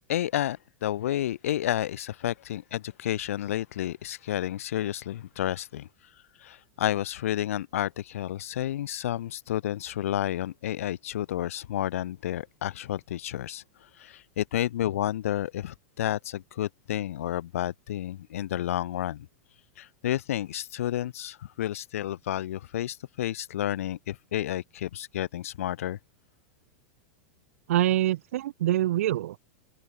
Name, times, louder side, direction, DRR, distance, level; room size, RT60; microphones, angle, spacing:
voice 1, 0.1-5.9 6.4-13.6 14.0-19.3 19.8-26.0, left 12 dB, 90° left, 0.9 m, -31 dB
voice 2, 27.7-29.4, right 14 dB, 80° right, 0.4 m, -25 dB
supercardioid pair, 155°, 7 cm